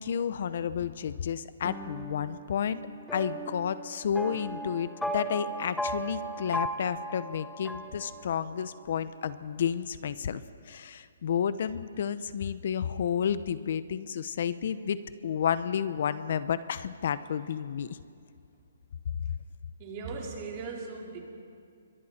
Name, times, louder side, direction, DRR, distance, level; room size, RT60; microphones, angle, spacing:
voice 1, 0.0-2.8 3.1-10.4 10.7-18.0, left 8 dB, 60° left, 14 dB, 0.8 m, -31 dB
sound 1, 1.6-8.6, right 1 dB, ahead, 0.7 m, -37 dB
voice 2, 19.8-21.2, right 4 dB, 35° right, -1 dB, 4.2 m, -38 dB
28.0 x 23.5 x 4.4 m, 2.3 s
hypercardioid pair, 155°, 0 cm